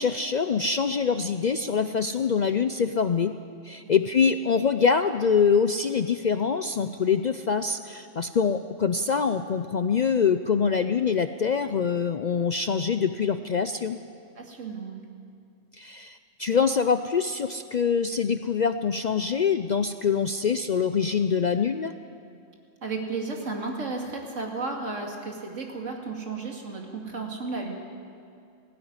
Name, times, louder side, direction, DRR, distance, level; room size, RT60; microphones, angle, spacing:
voice 1, 0.0-3.4 3.6-14.0 15.8-21.9, left 6 dB, 50° left, 10 dB, 0.5 m, -24 dB
voice 2, 14.4-15.1 22.8-27.7, right 3 dB, 80° right, 1 dB, 2.8 m, -33 dB
18.5 x 15.5 x 9.7 m, 2.5 s
omnidirectional pair, 1.3 m